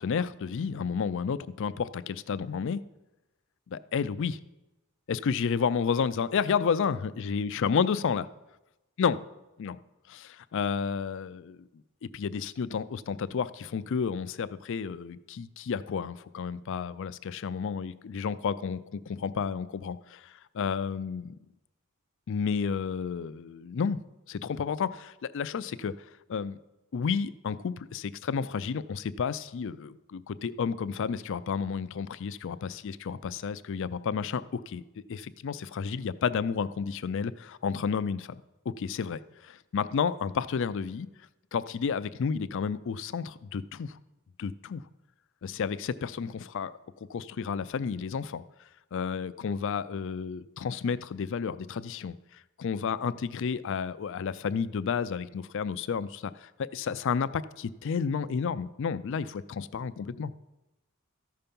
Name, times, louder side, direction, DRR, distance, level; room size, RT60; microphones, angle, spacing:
voice 1, 0.0-2.8 3.7-4.4 5.1-8.2 9.0-9.2 9.6-9.8 10.1-11.7 12.1-21.4 22.3-24.0 24.3-25.9 26.3-26.6 26.9-34.8 35.1-38.4 38.7-41.1 41.5-44.0 44.4-44.8 45.4-46.7 47.1-48.4 48.9-52.2 52.6-60.3, left 6 dB, 60° left, 15 dB, 0.4 m, -31 dB
14.0 x 5.7 x 5.3 m, 1.0 s
head